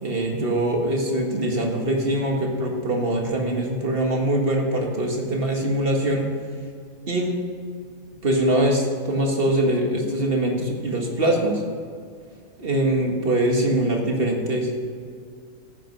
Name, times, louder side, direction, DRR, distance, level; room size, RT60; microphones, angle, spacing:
voice 1, 0.0-6.3 7.1-7.4 8.2-11.6 12.6-14.7, right 1 dB, 45° right, 1 dB, 2.0 m, -23 dB
14.5 x 9.1 x 5.5 m, 2.2 s
omnidirectional pair, 1.4 m